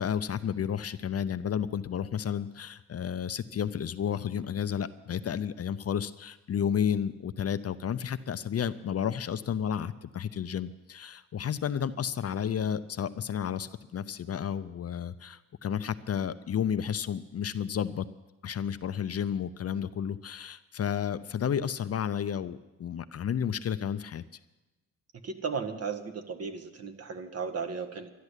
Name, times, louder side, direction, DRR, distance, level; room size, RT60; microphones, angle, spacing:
voice 1, 0.0-18.0 18.4-24.2, left 8 dB, 45° left, 12 dB, 0.6 m, -32 dB
voice 2, 25.2-28.1, right 5 dB, 45° right, 8 dB, 1.5 m, -35 dB
12.5 x 11.5 x 8.2 m, 1.1 s
cardioid pair, 80°, 33 cm